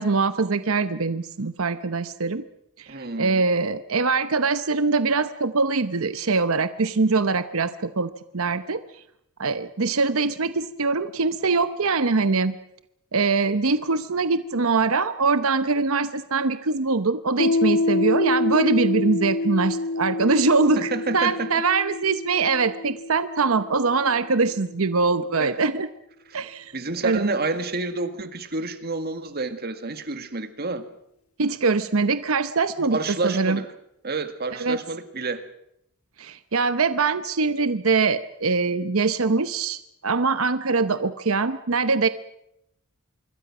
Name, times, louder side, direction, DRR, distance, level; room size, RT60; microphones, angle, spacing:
voice 1, 0.0-2.4 2.8-8.8 9.4-12.6 13.1-25.9 26.3-26.7 27.0-27.3 31.4-33.6 34.6-34.8 36.2-42.1, right 4 dB, 70° right, 0.9 m, -23 dB
voice 2, 2.9-3.4 20.9-21.5 25.4-25.6 26.7-30.8 32.9-33.7 34.0-35.4, right 3 dB, 45° right, 2.0 m, -29 dB
Piano, 17.4-24.6, left 2 dB, 75° left, 1.5 m, -27 dB
26.0 x 23.0 x 6.1 m
head